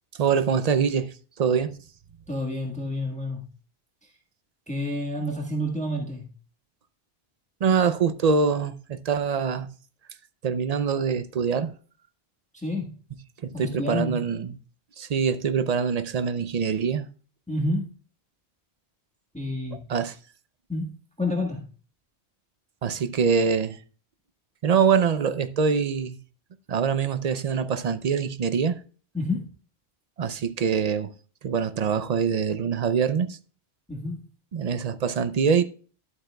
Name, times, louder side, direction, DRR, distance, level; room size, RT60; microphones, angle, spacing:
voice 1, 0.2-1.7 7.6-9.7 10.4-11.7 13.4-14.6 15.0-17.1 19.9-20.1 22.8-23.8 24.6-26.2 26.7-28.8 30.2-31.1 31.4-33.4 34.5-35.6, right 6 dB, 50° right, 0.5 m, -24 dB
voice 2, 2.3-3.4 4.0-4.1 4.7-6.3 12.5-12.9 13.5-14.2 17.5-17.9 19.3-19.9 20.7-21.6 29.1-29.4 33.9-34.2, left 1 dB, 5° left, 1.4 m, -29 dB
12.0 x 7.7 x 2.2 m
omnidirectional pair, 1.1 m